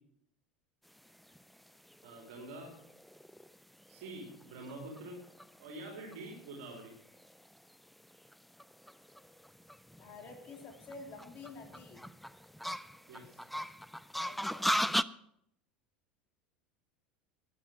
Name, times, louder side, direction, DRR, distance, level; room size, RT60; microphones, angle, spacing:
sound 1, 1.1-15.0, equal, ahead, 0.4 m, -39 dB
voice 1, 2.0-2.7 3.9-5.2 5.6-6.9 13.1-13.4, right 2 dB, 60° right, 1 dB, 3.2 m, -46 dB
voice 2, 10.0-12.1 14.2-14.8, left 3 dB, 40° left, 2 dB, 3.2 m, -49 dB
12.0 x 10.0 x 6.2 m, 0.75 s
figure-of-eight pair, 75°, 5 cm